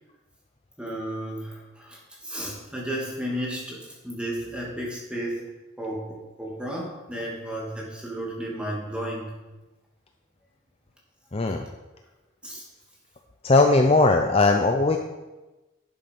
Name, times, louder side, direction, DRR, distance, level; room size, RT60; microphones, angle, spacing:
voice 1, 0.8-5.5 5.8-9.3 12.4-12.6, right 1 dB, 5° right, -4 dB, 2.6 m, -33 dB
voice 2, 11.3-11.6 13.4-15.0, left 3 dB, 30° left, 4 dB, 0.6 m, -19 dB
11.5 x 7.2 x 5.3 m, 1.1 s
head